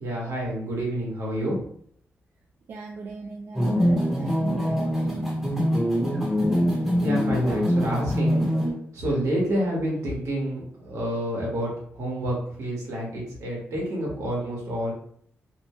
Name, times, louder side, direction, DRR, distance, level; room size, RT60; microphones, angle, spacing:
voice 1, 0.0-1.6 7.0-8.4 8.9-14.9, right 1 dB, 80° right, -3 dB, 1.2 m, -28 dB
voice 2, 2.7-5.3 6.3-6.8, right 5 dB, 55° right, 1 dB, 0.3 m, -38 dB
sound 1, 3.5-8.7, equal, 5° right, 0.8 m, -23 dB
2.8 x 2.1 x 3.0 m, 0.62 s
wide cardioid pair, 120°, 5 cm